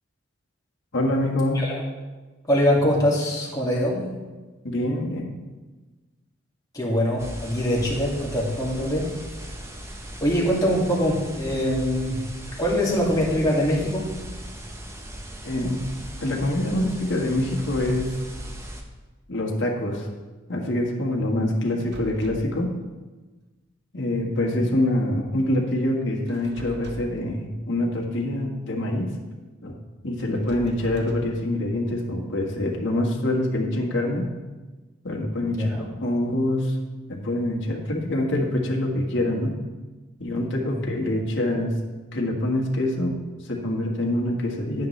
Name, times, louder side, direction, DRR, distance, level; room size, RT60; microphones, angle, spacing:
voice 1, 0.9-1.6 4.6-5.3 15.4-15.8 16.2-18.1 19.3-20.1 20.5-22.7 23.9-29.1 29.6-29.7 30.0-34.3 35.0-36.8 37.1-39.6 40.2-41.7 42.1-43.1 43.4-44.9, left 1 dB, 60° left, -1 dB, 1.6 m, -25 dB
voice 2, 2.5-4.0 6.7-9.1 10.2-12.2 12.6-14.1 35.5-35.9 40.7-40.8, equal, 20° left, -4 dB, 2.2 m, -23 dB
sound 1, 7.2-18.8, equal, 15° right, 0.8 m, -38 dB
sound 2, 17.5-18.2 21.6-22.6 26.3-27.3 30.2-31.4, right 1 dB, 55° right, 0.8 m, -42 dB
10.5 x 9.3 x 3.3 m, 1.2 s
head